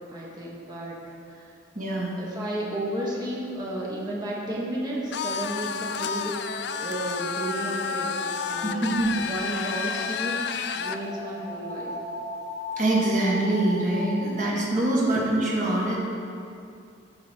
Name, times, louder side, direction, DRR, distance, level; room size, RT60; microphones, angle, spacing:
voice 1, 0.1-0.9 1.3-1.4 2.2-8.8 9.2-11.9, right 1 dB, 20° right, -5 dB, 1.4 m, -33 dB
voice 2, 1.8-2.1 8.6-9.1 12.8-16.0, right 1 dB, 40° right, -5 dB, 1.8 m, -24 dB
sound 1, 5.1-11.0, left 6 dB, 60° left, 0.4 m, -30 dB
sound 2, 6.9-14.6, left 1 dB, 45° left, 1.3 m, -38 dB
13.5 x 5.1 x 4.6 m, 2.5 s
head